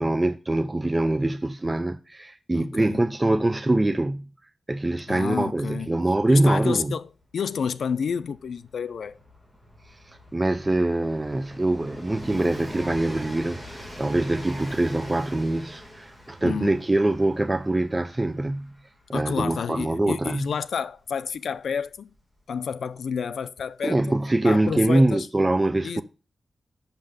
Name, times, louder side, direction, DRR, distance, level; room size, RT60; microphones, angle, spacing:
voice 1, 0.0-4.3 4.7-7.0 9.9-18.8 19.1-20.5 23.8-26.0, right 2 dB, 15° right, 0.3 m, -24 dB
voice 2, 2.5-3.0 5.1-5.9 6.3-9.2 16.4-16.8 19.1-22.1 22.5-24.2 24.4-25.3 25.8-26.0, left 6 dB, 85° left, 0.4 m, -30 dB
Train, 6.0-6.1 6.3-22.9 23.9-24.0, equal, ahead, 1.5 m, -44 dB
5.8 x 5.6 x 6.6 m
wide cardioid pair, 175°, 0 cm